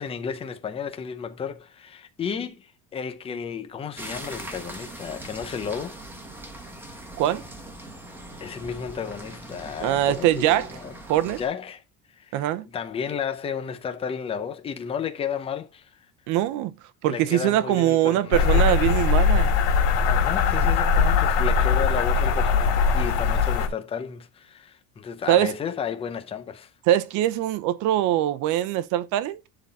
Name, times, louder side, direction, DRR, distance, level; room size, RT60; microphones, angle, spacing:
voice 1, 0.0-6.0 8.4-10.9 11.2-11.8 12.2-12.4 12.7-15.9 17.1-18.7 20.1-26.7, left 7 dB, 15° left, 0.6 m, -33 dB
sound 1, 4.0-11.5, right 1 dB, 5° right, 1.4 m, -41 dB
voice 2, 9.8-10.8 11.1-11.4 12.3-12.6 16.3-16.7 17.0-19.5 25.3-25.5 26.9-29.4, right 13 dB, 55° right, 0.8 m, -22 dB
sound 2, 18.3-23.7, left 5 dB, 70° left, 2.6 m, -21 dB
11.5 x 4.0 x 4.0 m
cardioid pair, 175°, 36 cm